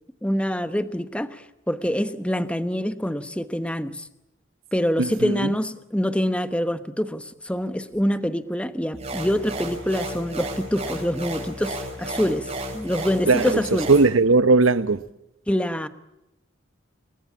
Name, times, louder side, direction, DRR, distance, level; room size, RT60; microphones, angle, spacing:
voice 1, 0.2-4.1 4.7-13.9 15.5-15.9, equal, 5° left, 1.1 m, -25 dB
voice 2, 5.0-5.5 13.3-13.6 13.9-15.0, right 3 dB, 80° right, 1.0 m, -18 dB
sound 1, 8.9-14.1, right 1 dB, 30° right, 6.2 m, -33 dB
28.5 x 22.0 x 8.6 m
head